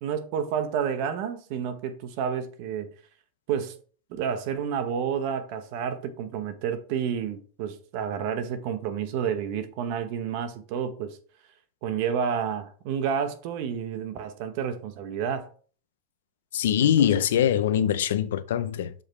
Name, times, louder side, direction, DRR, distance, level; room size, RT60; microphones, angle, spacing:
voice 1, 0.0-2.9 3.5-3.8 4.1-11.2 11.8-15.5 16.8-17.1, right 7 dB, 45° right, 0.9 m, -30 dB
voice 2, 16.5-18.9, left 10 dB, 80° left, 0.6 m, -23 dB
6.7 x 5.2 x 3.2 m
supercardioid pair, 160°, 0 cm